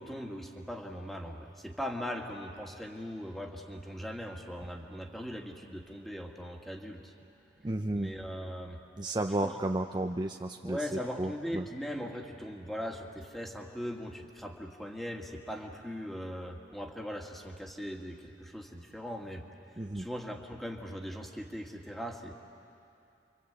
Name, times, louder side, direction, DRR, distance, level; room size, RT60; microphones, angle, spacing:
voice 1, 0.0-7.1 7.9-8.8 9.4-9.5 10.6-19.5 19.7-22.3, equal, ahead, 1 dB, 1.9 m, -40 dB
voice 2, 7.6-8.1 9.0-10.8 11.2-11.7 19.8-20.1, right 1 dB, 25° right, 4 dB, 0.6 m, -32 dB
29.5 x 24.5 x 8.2 m, 2.6 s
head